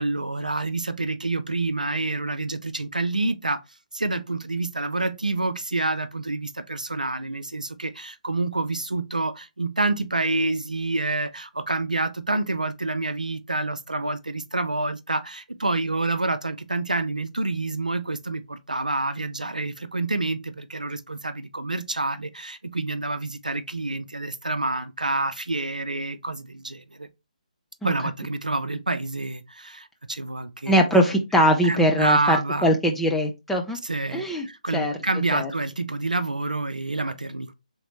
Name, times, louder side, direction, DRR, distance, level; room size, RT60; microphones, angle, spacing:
voice 1, 0.0-3.6 3.9-27.1 27.8-30.7 31.6-32.7 33.8-37.5, right 2 dB, 80° right, 0.5 m, -28 dB
voice 2, 30.7-32.4 32.6-33.8 34.1-34.5 34.7-34.9 35.3-35.5, equal, 5° left, 0.4 m, -21 dB
4.1 x 3.5 x 3.0 m
figure-of-eight pair, 140°, 4 cm